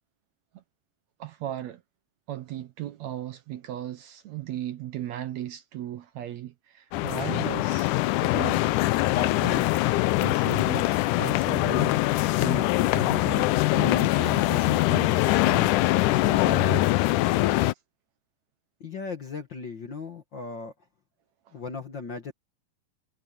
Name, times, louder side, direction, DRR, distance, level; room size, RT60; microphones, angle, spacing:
voice 1, 1.2-1.8 2.3-7.9 8.2-8.7 9.1-12.0 12.4-15.8 16.2-16.9 21.5-21.6, right 12 dB, 70° right, 1.9 m, -37 dB
sound 1, 6.9-17.7, left 18 dB, 80° left, 2.0 m, -23 dB
voice 2, 18.8-20.7 21.5-22.3, left 4 dB, 50° left, 1.6 m, -37 dB
omnidirectional pair, 3.8 m